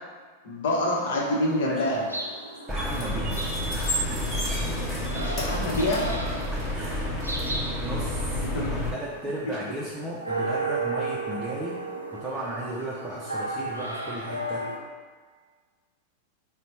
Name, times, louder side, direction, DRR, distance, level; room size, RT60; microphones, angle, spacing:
voice 1, 0.4-2.1 5.2-6.1 8.5-8.7 9.4-9.6, left 1 dB, 55° left, -3 dB, 0.9 m, -26 dB
sound 1, 0.7-14.8, right 2 dB, 80° right, 0.5 m, -35 dB
voice 2, 1.7-2.0 2.7-3.4 3.7-4.6 6.7-7.2 7.8-11.8 12.1-14.6, right 1 dB, 15° right, -5 dB, 0.5 m, -35 dB
sound 2, 2.7-8.9, left 1 dB, 10° left, 1.1 m, -29 dB
4.1 x 2.1 x 4.0 m, 1.5 s
figure-of-eight pair, 90°, 0 cm